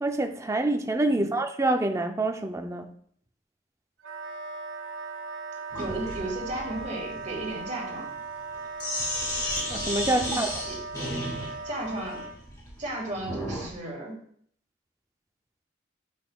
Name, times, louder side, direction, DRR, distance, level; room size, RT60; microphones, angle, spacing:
voice 1, 0.0-2.9 9.7-10.5, right 2 dB, 15° right, 0.4 m, -26 dB
Wind instrument woodwind instrument, 4.0-12.4, right 3 dB, 80° right, 1.4 m, -38 dB
Sink (filling or washing), 5.7-13.7, left 1 dB, 20° left, 2.3 m, -34 dB
voice 2, 5.8-8.1 10.1-10.4 10.7-10.8 11.6-12.2 12.8-14.2, right 1 dB, 40° right, 1.8 m, -34 dB
8.6 x 5.4 x 2.3 m
head